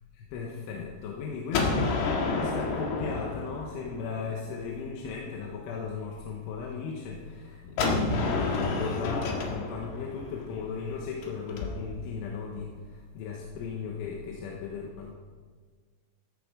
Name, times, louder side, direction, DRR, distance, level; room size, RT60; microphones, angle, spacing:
voice 1, 0.1-15.1, left 5 dB, 75° left, -1 dB, 3.6 m, -36 dB
Gunshot gunfire, 1.5-4.3 7.8-11.6, left 3 dB, 60° left, 3.4 m, -30 dB
14.5 x 14.0 x 5.1 m, 1.5 s
omnidirectional pair, 5.9 m